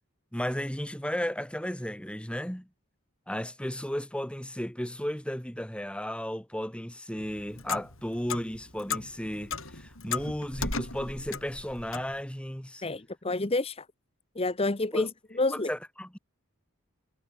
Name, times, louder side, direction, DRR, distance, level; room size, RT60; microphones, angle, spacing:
voice 1, 0.3-2.7 3.3-12.8 14.9-15.1 15.5-16.2, equal, 5° left, 2.2 m, -34 dB
Clock, 7.2-12.2, left 5 dB, 60° left, 5.4 m, -36 dB
voice 2, 12.8-13.9 14.4-15.1 15.4-15.7, left 2 dB, 25° left, 1.0 m, -28 dB
head